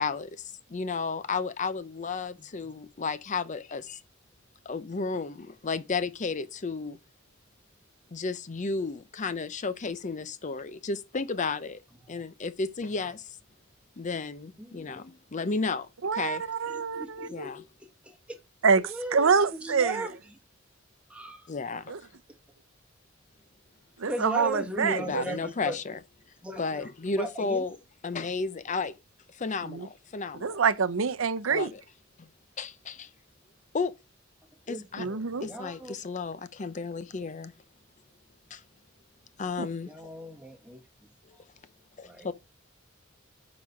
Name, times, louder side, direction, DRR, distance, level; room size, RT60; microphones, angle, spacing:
voice 1, 0.0-4.0 4.7-7.0 8.1-11.8 12.1-13.4 14.0-16.5 17.3-17.6 21.5-22.1 24.8-26.0 26.6-27.8 28.0-29.0 29.3-30.6 31.5-31.8 32.2-32.3 32.6-33.1 33.7-33.9 34.7-35.1 35.4-37.5 38.5-38.6 39.4-40.1 41.2-41.4 42.0-42.3, left 4 dB, 40° left, 0.6 m, -33 dB
voice 2, 14.6-15.0 16.7-17.5 18.0-18.4 18.8-20.1 21.1-21.5 24.1-25.8 26.4-27.6 34.6-35.9 39.8-40.8 42.0-42.3, right 1 dB, 5° right, 1.3 m, -38 dB
voice 3, 16.0-17.5 18.6-20.0 21.9-22.0 24.0-25.2 29.6-29.9 30.4-31.7 35.0-35.5, right 5 dB, 85° right, 0.7 m, -26 dB
9.5 x 4.1 x 5.8 m
head